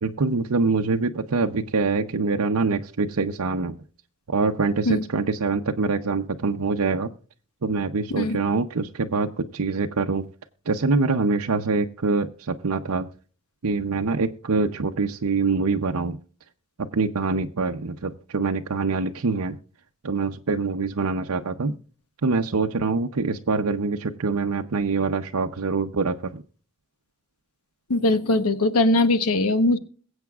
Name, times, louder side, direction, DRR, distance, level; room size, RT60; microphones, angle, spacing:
voice 1, 0.0-3.8 4.3-7.1 7.6-10.2 10.7-13.1 13.6-16.2 16.8-19.6 20.0-21.7 22.2-26.4, right 4 dB, 80° right, 4 dB, 0.7 m, -24 dB
voice 2, 27.9-29.8, left 2 dB, 85° left, 11 dB, 1.0 m, -20 dB
22.0 x 8.0 x 2.4 m, 0.41 s
head